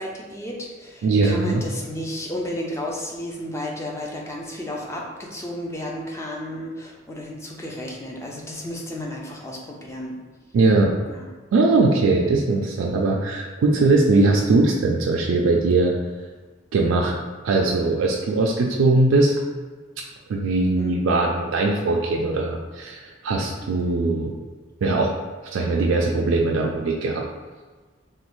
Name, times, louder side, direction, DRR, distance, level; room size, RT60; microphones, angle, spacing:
voice 1, 0.0-10.2 11.1-11.3 11.9-12.1 20.8-20.9, left 1 dB, 15° left, -1 dB, 0.4 m, -33 dB
voice 2, 1.0-1.6 10.5-10.9 11.5-15.9 16.7-17.1 17.4-19.4 20.3-24.3 24.8-25.1 25.5-27.2, right 3 dB, 75° right, 0 dB, 0.3 m, -20 dB
3.2 x 2.3 x 3.0 m, 1.3 s
head